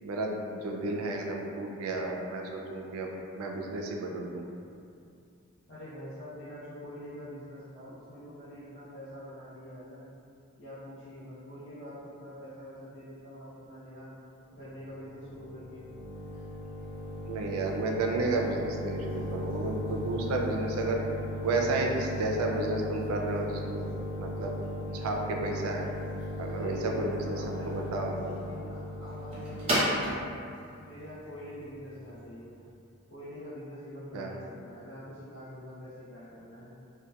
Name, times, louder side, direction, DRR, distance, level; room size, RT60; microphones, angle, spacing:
voice 1, 0.0-3.1 3.3-4.4 17.3-21.0 21.4-23.9 24.2-24.5 24.9-25.9 26.4-28.4 34.1-34.3, right 2 dB, 85° right, 0 dB, 0.3 m, -32 dB
voice 2, 5.7-10.1 10.6-14.1 14.5-15.9 26.5-30.1 30.8-32.6 33.1-36.7, equal, 60° left, -13 dB, 0.6 m, -45 dB
sound 1, 14.6-32.2, equal, 25° right, 0.6 m, -36 dB
2.7 x 2.1 x 2.2 m, 2.5 s
head